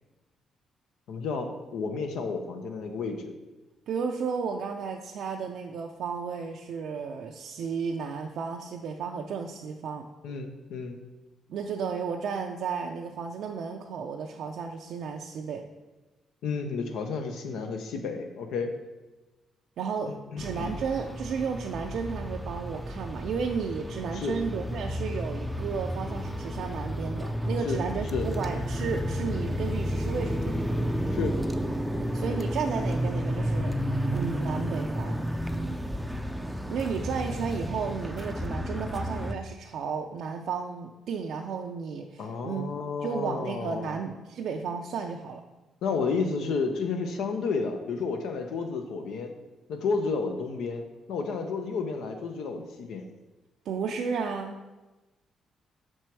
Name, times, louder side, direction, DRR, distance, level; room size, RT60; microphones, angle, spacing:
voice 1, 1.1-3.3 10.2-11.0 16.4-18.7 20.1-20.7 24.1-24.4 27.6-27.8 28.1-28.3 31.1-31.4 42.2-43.9 45.8-49.3 49.7-53.1, left 4 dB, 80° left, 5 dB, 0.6 m, -31 dB
voice 2, 3.9-10.1 11.5-15.6 19.8-30.7 32.1-35.2 36.7-45.4 53.7-54.6, right 5 dB, 70° right, 1 dB, 0.4 m, -33 dB
sound 1, 20.4-39.3, equal, 5° right, 0.4 m, -31 dB
6.0 x 4.5 x 4.6 m, 1.1 s
cardioid pair, 90°, 0 cm